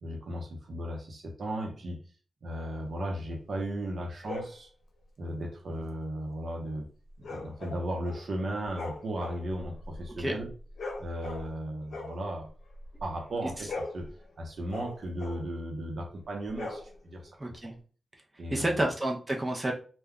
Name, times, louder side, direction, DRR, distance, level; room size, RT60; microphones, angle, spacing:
voice 1, 0.0-2.0 2.4-4.7 5.2-6.9 7.2-10.5 11.0-12.5 13.0-17.5 18.4-18.8, right 1 dB, 65° right, 2 dB, 0.7 m, -36 dB
sound 1, 4.2-4.6 7.2-8.3 8.6-11.6 11.9-13.1 13.5-15.5 16.5-17.3, left 3 dB, 85° left, 0.6 m, -41 dB
voice 2, 17.4-17.8 18.5-19.7, right 1 dB, 15° right, 0 dB, 0.5 m, -29 dB
2.3 x 2.1 x 3.5 m, 0.38 s
cardioid pair, 85°, 0 cm